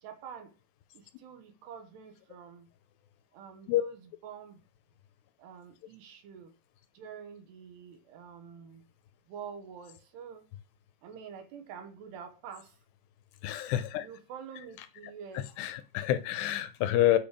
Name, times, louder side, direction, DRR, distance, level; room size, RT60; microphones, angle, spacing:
voice 1, 0.0-0.5 0.9-2.7 3.3-4.6 5.4-6.5 7.0-8.8 9.3-10.5 11.0-12.8 14.0-15.5, right 7 dB, 70° right, 3.4 m, -46 dB
voice 2, 13.4-14.1 15.6-17.2, left 13 dB, 85° left, 2.7 m, -27 dB
9.0 x 5.2 x 5.1 m
omnidirectional pair, 5.1 m